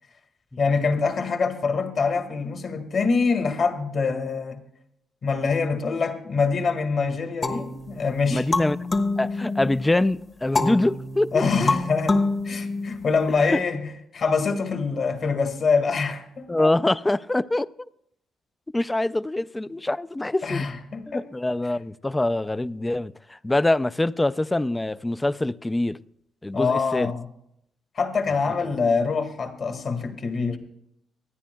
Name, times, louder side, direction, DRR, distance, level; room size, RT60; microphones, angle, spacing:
voice 1, 0.6-4.6 5.2-8.5 11.3-13.8 14.1-16.7 20.4-21.2 26.5-27.3 27.9-30.6, left 4 dB, 50° left, 1.7 m, -25 dB
sound 1, 7.4-9.9 10.5-13.3, left 3 dB, 30° left, 1.1 m, -27 dB
voice 2, 8.3-8.8 9.2-11.7 13.5-13.6 16.5-17.7 18.7-20.7 21.1-26.0 26.4-27.1, left 2 dB, 15° left, 0.3 m, -24 dB
25.0 x 10.0 x 2.3 m
cardioid pair, 90°, 0 cm